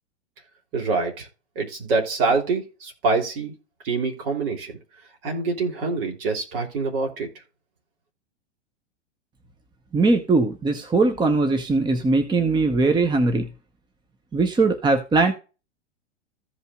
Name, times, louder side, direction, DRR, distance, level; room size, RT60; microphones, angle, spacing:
voice 1, 0.7-1.3 1.5-3.5 3.8-4.8 5.2-7.3, right 4 dB, 55° right, 2 dB, 3.2 m, -25 dB
voice 2, 9.9-13.5 14.3-15.3, right 3 dB, 15° right, 6 dB, 1.0 m, -20 dB
15.0 x 5.4 x 2.4 m, 0.32 s
figure-of-eight pair, 95°, 34 cm